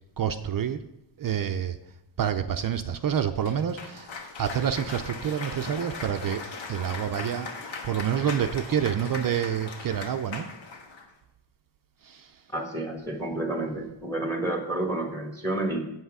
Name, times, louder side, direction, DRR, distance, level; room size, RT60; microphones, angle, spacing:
voice 1, 0.2-0.8 1.2-1.8 2.2-4.1 4.4-6.4 6.7-7.5 7.8-10.5 12.0-12.3, right 9 dB, 50° right, 8 dB, 0.5 m, -28 dB
Cheering / Applause, 3.4-11.1, left 4 dB, 75° left, 1.3 m, -39 dB
voice 2, 12.5-15.9, right 2 dB, 5° left, 3 dB, 1.2 m, -30 dB
8.0 x 7.8 x 4.8 m, 0.87 s
wide cardioid pair, 160°, 47 cm